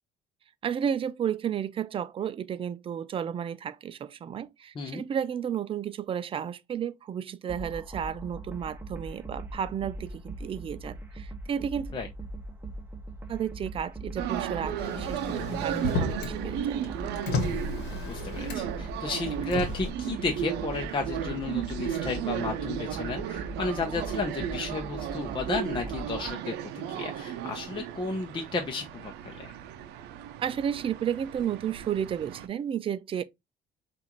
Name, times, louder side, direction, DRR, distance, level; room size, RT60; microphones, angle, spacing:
voice 1, 0.6-11.9 13.3-16.8 30.4-33.2, right 8 dB, 30° right, 0.4 m, -32 dB
sound 1, 7.5-26.3, right 2 dB, 10° right, 1.1 m, -41 dB
sound 2, 14.2-32.5, right 10 dB, 85° right, 0.5 m, -35 dB
Motor vehicle (road), 14.8-16.4 16.7-18.8 19.4-19.9, left 3 dB, 85° left, 1.1 m, -33 dB
voice 2, 18.1-29.5, left 3 dB, 30° left, 0.8 m, -33 dB
5.5 x 2.6 x 2.9 m
cardioid pair, 110°, 17 cm